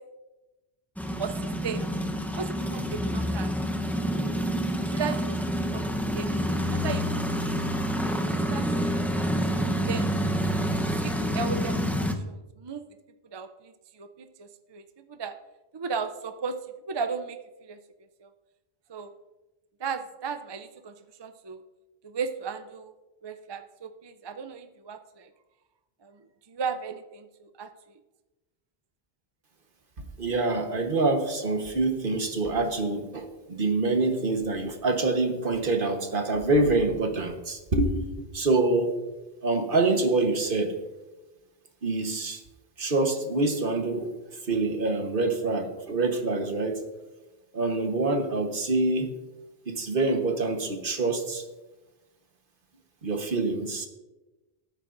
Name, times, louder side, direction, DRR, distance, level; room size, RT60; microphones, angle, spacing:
sound 1, 1.0-12.1, equal, ahead, 0.7 m, -28 dB
voice 1, 2.3-3.5 4.9-5.4 5.7-6.3 6.7-7.6 8.3-9.1 9.7-10.1 11.0-12.8 13.3-15.3 15.7-16.6 16.9-17.8 18.2-18.3 18.9-19.1 19.8-20.9 21.2-21.6 22.0-22.9 23.2-25.3 26.0-26.2 26.5-27.7, right 5 dB, 35° right, 9 dB, 0.4 m, -36 dB
voice 2, 30.2-38.9 39.4-40.7 41.8-42.4 42.8-44.1 44.4-46.8 47.5-49.1 49.7-51.4 53.0-53.9, right 2 dB, 55° right, 5 dB, 1.4 m, -26 dB
18.0 x 9.0 x 2.6 m, 1.1 s
omnidirectional pair, 1.1 m